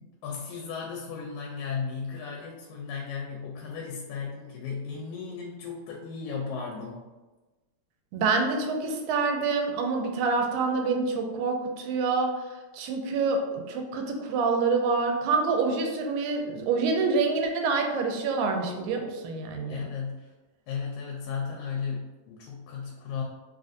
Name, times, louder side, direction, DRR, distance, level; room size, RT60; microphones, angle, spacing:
voice 1, 0.0-7.1 19.7-20.3 20.7-23.2, left 5 dB, 85° left, -1 dB, 2.0 m, -35 dB
voice 2, 8.1-19.9, right 4 dB, 85° right, 3 dB, 1.9 m, -27 dB
4.5 x 2.5 x 2.5 m, 1.2 s
omnidirectional pair, 3.3 m